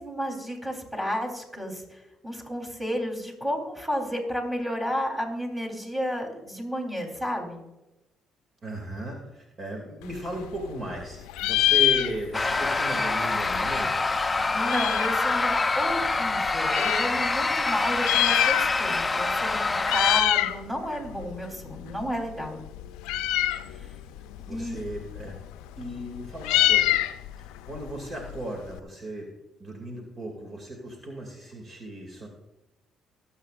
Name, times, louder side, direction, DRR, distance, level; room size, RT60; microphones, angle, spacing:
voice 1, 0.0-7.6 14.5-22.6 23.7-23.9 24.5-24.8, equal, 15° right, 0 dB, 3.6 m, -32 dB
voice 2, 8.6-14.1 23.6-24.1 24.5-25.4 25.8-27.0 27.4-29.3 29.6-32.3, right 1 dB, 50° right, 1 dB, 2.4 m, -36 dB
Meow, 10.0-11.0 11.3-12.6 12.9-13.0 13.1-15.3 15.9-17.1 17.9-19.0 19.3-19.5 19.8-20.6 20.9-28.8, left 14 dB, 85° left, 0.4 m, -26 dB
sound 1, 12.3-20.2, left 3 dB, 25° left, 0.6 m, -26 dB
24.0 x 8.4 x 2.5 m, 0.99 s
supercardioid pair, 60°, 0 cm